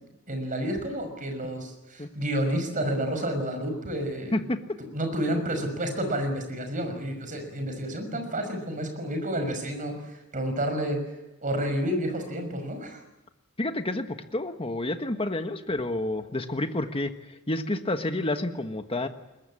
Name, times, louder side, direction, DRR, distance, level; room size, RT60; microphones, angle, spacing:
voice 1, 0.3-4.5 4.9-11.0 11.4-13.0, right 1 dB, 40° right, 6 dB, 5.8 m, -30 dB
voice 2, 13.6-17.1 17.5-19.1, left 1 dB, 25° left, 7 dB, 1.4 m, -29 dB
21.5 x 21.0 x 9.9 m, 0.98 s
head